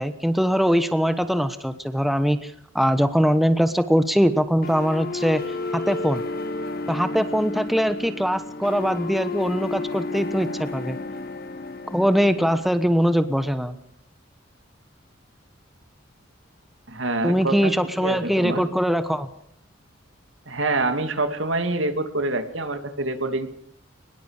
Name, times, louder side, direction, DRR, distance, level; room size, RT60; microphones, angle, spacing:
voice 1, 0.0-5.4 5.7-6.2 6.9-11.0 11.9-13.8 17.2-19.3, equal, ahead, 10 dB, 1.1 m, -22 dB
sound 1, 4.6-12.6, left 3 dB, 50° left, 2.0 m, -32 dB
voice 2, 16.9-17.7 18.0-18.6 20.5-23.5, right 2 dB, 75° right, 8 dB, 2.7 m, -26 dB
23.0 x 21.0 x 6.6 m, 0.69 s
head